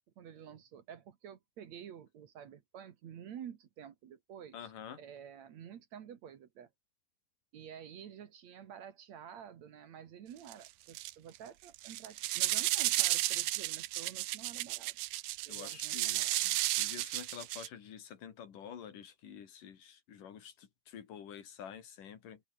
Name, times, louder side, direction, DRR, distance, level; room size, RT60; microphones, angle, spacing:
voice 1, 0.2-4.6 5.0-6.7 7.5-15.0 15.5-16.4, right 9 dB, 60° right, 2.7 m, -50 dB
voice 2, 4.5-5.0 15.5-22.4, left 8 dB, 75° left, 4.0 m, -49 dB
sound 1, 10.5-10.7 11.0-11.4 11.7-17.7, right 17 dB, 80° right, 2.3 m, -33 dB
open air
omnidirectional pair, 3.8 m